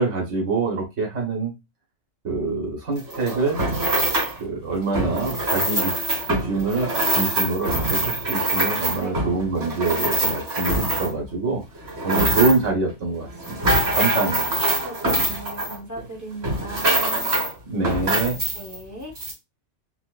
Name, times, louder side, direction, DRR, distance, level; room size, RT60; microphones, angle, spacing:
voice 1, 0.0-1.5 2.2-3.6 4.4-5.9 6.3-11.6 12.0-13.6 13.9-14.4 17.7-18.4, right 3 dB, 80° right, 0 dB, 1.6 m, -25 dB
sound 1, 3.0-4.4 4.9-11.3 11.7-12.7 13.2-16.1 16.4-17.5 17.8-18.8 19.2-19.3, right 1 dB, 60° right, 2.3 m, -24 dB
voice 2, 14.8-17.3 18.5-19.1, right 2 dB, 15° left, -2 dB, 0.8 m, -38 dB
4.1 x 2.2 x 2.4 m, 0.22 s
omnidirectional pair, 1.2 m